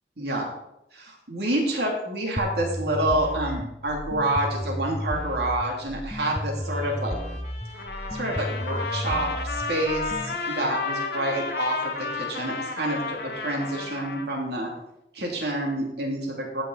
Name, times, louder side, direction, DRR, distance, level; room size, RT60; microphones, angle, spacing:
voice 1, 0.2-0.5 1.3-7.2 8.1-14.7 15.1-16.6, right 1 dB, 65° right, -1 dB, 2.9 m, -28 dB
sound 1, 2.4-10.4, equal, 5° left, 0.4 m, -33 dB
Trumpet, 6.5-14.1, left 2 dB, 35° left, 1.8 m, -43 dB
Trumpet 2, 7.7-14.3, left 4 dB, 60° left, 1.1 m, -32 dB
15.5 x 6.2 x 4.1 m, 0.83 s
head